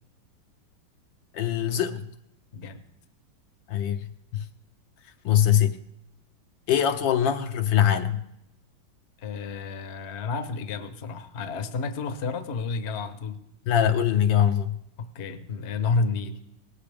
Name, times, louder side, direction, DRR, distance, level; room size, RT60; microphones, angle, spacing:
voice 1, 1.3-2.0 3.7-4.0 4.3-4.4 5.2-5.8 6.7-8.2 13.7-14.7, left 10 dB, 70° left, 7 dB, 1.4 m, -22 dB
voice 2, 9.2-13.4 15.0-16.4, left 4 dB, 45° left, 9 dB, 1.0 m, -30 dB
19.0 x 15.0 x 3.5 m, 0.78 s
omnidirectional pair, 2.2 m